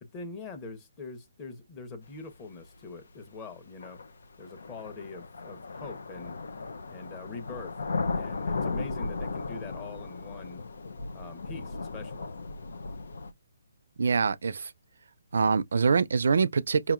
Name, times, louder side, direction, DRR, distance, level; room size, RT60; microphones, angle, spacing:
voice 1, 0.0-4.0 4.4-6.4 6.9-7.8 8.2-10.6 11.1-12.3, left 4 dB, 20° left, 1.0 m, -43 dB
sound 1, 2.7-2.8 3.8-13.3, left 3 dB, 75° left, 0.7 m, -36 dB
voice 2, 14.0-14.7 15.3-16.9, right 5 dB, 70° right, 0.5 m, -24 dB
5.1 x 2.9 x 2.5 m
hypercardioid pair, 160°, 0 cm